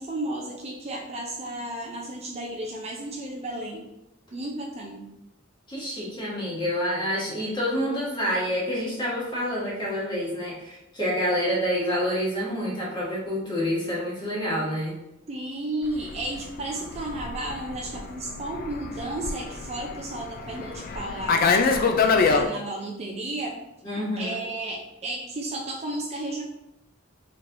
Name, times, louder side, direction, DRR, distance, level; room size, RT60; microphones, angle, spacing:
voice 1, 0.0-3.9 4.3-5.1 15.3-21.9 22.2-23.6 24.2-26.4, right 1 dB, 30° right, -1 dB, 0.4 m, -33 dB
voice 2, 5.7-14.9 23.8-24.4, equal, 20° left, -7 dB, 1.3 m, -28 dB
Fixed-wing aircraft airplane, 16.0-22.5, left 4 dB, 45° left, 0.3 m, -25 dB
4.4 x 3.1 x 2.5 m, 0.89 s
head